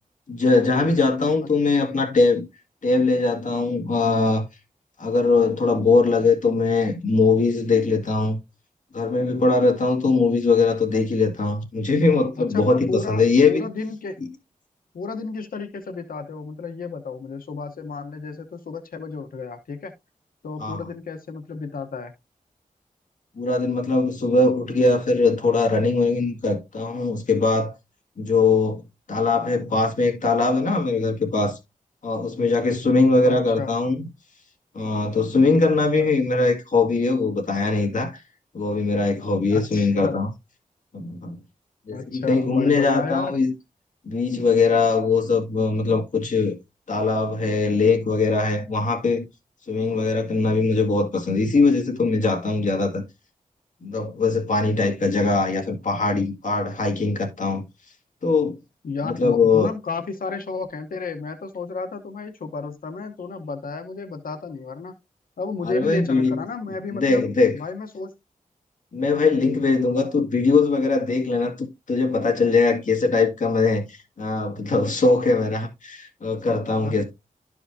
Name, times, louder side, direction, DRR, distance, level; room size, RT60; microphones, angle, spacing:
voice 1, 0.3-2.5 2.8-4.5 5.0-8.4 8.9-13.7 14.2-14.3 20.6-20.9 23.4-27.7 28.2-28.8 29.1-31.6 32.0-34.0 34.7-38.2 38.5-40.3 40.9-41.4 41.9-43.5 44.0-46.5 46.9-49.3 49.7-53.0 53.8-57.6 58.2-58.6 59.0-59.7 65.6-66.4 66.9-67.6 68.9-77.0, left 3 dB, 60° left, 2.0 m, -21 dB
voice 2, 12.4-14.2 14.9-19.9 20.4-22.1 33.2-33.7 36.0-36.1 39.5-40.2 41.9-43.3 58.8-64.9 65.4-67.3 67.5-68.1 69.9-70.1 76.8-77.0, left 4 dB, 90° left, 1.0 m, -32 dB
12.5 x 4.8 x 2.7 m
wide cardioid pair, 140°, 14 cm